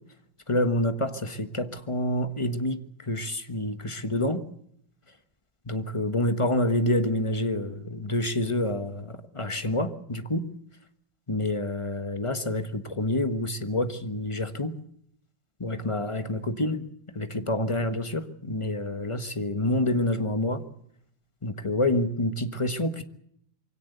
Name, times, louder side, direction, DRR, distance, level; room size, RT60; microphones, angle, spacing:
voice 1, 0.5-4.4 5.7-10.5 11.3-14.8 15.6-20.6 21.4-23.0, left 1 dB, 20° left, 9 dB, 1.1 m, -28 dB
24.0 x 17.5 x 8.0 m, 0.68 s
omnidirectional pair, 2.2 m